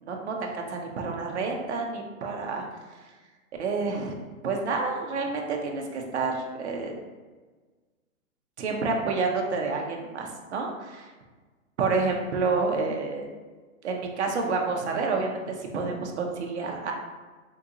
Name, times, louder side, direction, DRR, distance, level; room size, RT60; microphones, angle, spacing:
voice 1, 0.0-2.6 3.6-4.2 4.4-6.9 8.6-11.1 11.8-13.3 13.8-16.9, right 4 dB, 55° right, 1 dB, 0.6 m, -29 dB
3.7 x 2.6 x 2.4 m, 1.3 s
hypercardioid pair, 175°, 41 cm